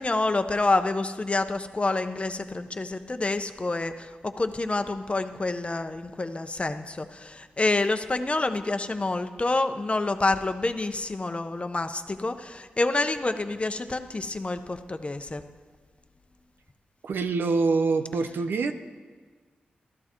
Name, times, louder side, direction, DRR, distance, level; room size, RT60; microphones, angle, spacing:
voice 1, 0.0-3.9 4.2-15.4, left 2 dB, 35° left, 8 dB, 1.0 m, -28 dB
voice 2, 17.0-18.7, right 4 dB, 80° right, 9 dB, 0.8 m, -25 dB
13.0 x 12.5 x 4.6 m, 1.5 s
cardioid pair, 45°, 4 cm